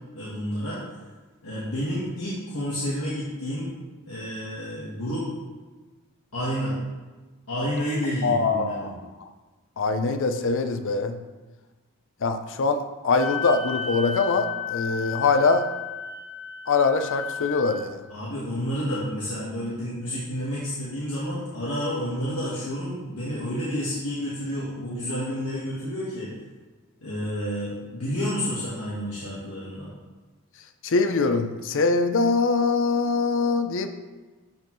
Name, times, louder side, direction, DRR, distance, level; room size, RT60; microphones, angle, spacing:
voice 1, 0.1-0.8 1.4-3.7 4.0-5.3 6.3-6.7 7.5-8.9 18.1-26.3 27.0-29.9, equal, 75° left, -8 dB, 1.5 m, -30 dB
voice 2, 8.2-8.9 9.8-11.2 12.2-12.8 13.0-15.6 16.7-18.0 30.8-33.9, left 4 dB, 60° left, 8 dB, 0.6 m, -23 dB
Wind instrument woodwind instrument, 13.1-17.8, left 6 dB, 10° left, 0.9 m, -33 dB
11.5 x 4.5 x 3.1 m, 1.3 s
head